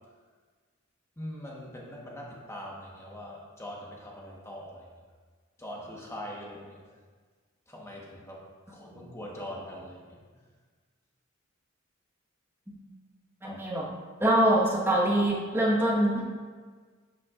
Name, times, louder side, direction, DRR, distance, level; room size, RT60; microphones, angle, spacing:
voice 1, 1.2-4.9 5.6-6.8 7.7-10.4 13.4-13.6, equal, 15° left, -3 dB, 1.2 m, -42 dB
voice 2, 13.4-13.8 14.2-16.2, right 1 dB, 10° right, -5 dB, 1.4 m, -24 dB
10.5 x 5.7 x 2.5 m, 1.5 s
head